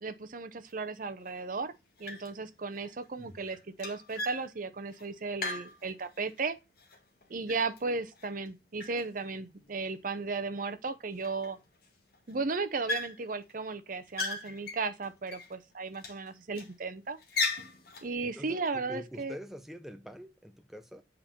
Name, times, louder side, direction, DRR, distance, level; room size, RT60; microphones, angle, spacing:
voice 1, 0.0-1.7 2.0-6.6 7.3-11.6 12.3-17.5 18.0-19.4, right 4 dB, 45° right, 0.7 m, -35 dB
sound 1, 0.7-0.8 1.3-1.7 2.0-2.5 2.7-6.4 6.8-8.5 8.8-9.7 10.3-10.4 10.7-10.8 11.1-11.9 12.1-12.4 12.9-13.5 13.9-15.5 15.9-16.7 17.2-18.1, left 2 dB, 55° left, 1.7 m, -38 dB
voice 2, 18.2-21.0, equal, ahead, 0.4 m, -45 dB
7.6 x 4.4 x 4.3 m
head